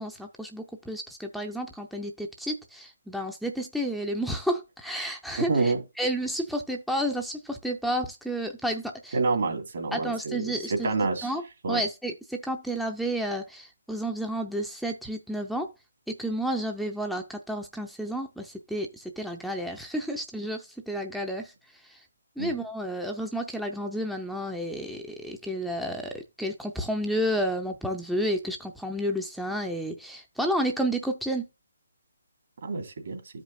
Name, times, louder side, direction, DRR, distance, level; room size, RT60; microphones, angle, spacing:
voice 1, 0.0-9.2 9.9-10.9 11.2-11.4 11.7-15.7 16.1-21.5 21.9-22.0 22.4-31.4, equal, ahead, 0.6 m, -31 dB
voice 2, 5.4-5.8 9.1-11.3 11.6-11.8 22.4-22.5 32.6-33.2, right 3 dB, 60° right, 2.2 m, -28 dB
13.0 x 5.1 x 2.6 m
hypercardioid pair, 150°, 0 cm